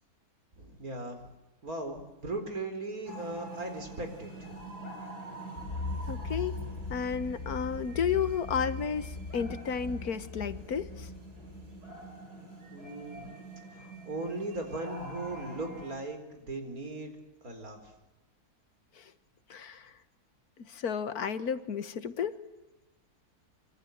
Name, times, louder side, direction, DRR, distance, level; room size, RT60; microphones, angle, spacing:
voice 1, 0.6-1.3 1.6-4.7 12.7-13.3 13.7-17.2 17.4-17.9, right 2 dB, 65° right, 6 dB, 4.7 m, -38 dB
sound 1, 3.1-16.0, right 2 dB, 85° right, 5.2 m, -46 dB
sound 2, 5.6-12.1, left 3 dB, 50° left, 2.2 m, -40 dB
voice 2, 6.1-6.6 6.9-11.1 19.0-19.1 19.5-19.9 20.6-22.4, left 7 dB, 75° left, 12 dB, 1.8 m, -32 dB
25.5 x 25.0 x 8.0 m, 1.0 s
omnidirectional pair, 1.6 m